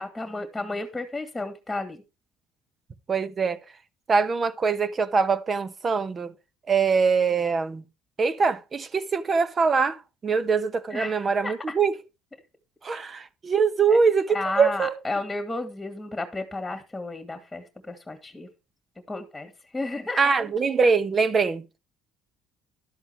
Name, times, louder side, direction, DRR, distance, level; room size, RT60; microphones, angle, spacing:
voice 1, 0.0-2.0 10.9-11.7 13.9-14.0 14.3-18.5 19.1-20.2, left 2 dB, 10° left, 2.2 m, -33 dB
voice 2, 3.1-3.6 4.1-6.3 6.7-7.8 8.2-11.9 12.8-15.0 20.2-21.6, right 5 dB, 35° right, 1.2 m, -23 dB
12.5 x 7.9 x 4.6 m
cardioid pair, 100°, 0 cm